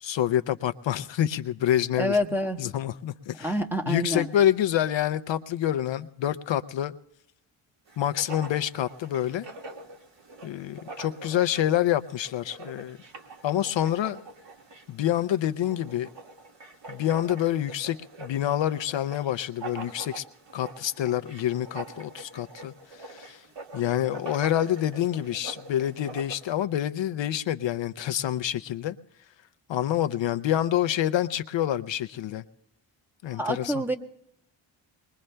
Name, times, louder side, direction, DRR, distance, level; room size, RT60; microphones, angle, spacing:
voice 1, 0.0-2.2 2.6-3.6 3.9-6.9 8.0-9.4 10.4-13.0 13.4-14.2 14.9-16.1 16.9-20.2 20.5-23.4 23.7-28.9 29.7-32.4 33.2-33.7, left 11 dB, 65° left, 11 dB, 0.6 m, -27 dB
voice 2, 2.0-2.6 3.4-4.3 33.2-34.0, equal, 5° right, 4 dB, 1.0 m, -27 dB
Writing, 7.9-26.6, right 3 dB, 60° right, 1.8 m, -44 dB
21.5 x 21.5 x 2.2 m, 0.75 s
cardioid pair, 95°, 50 cm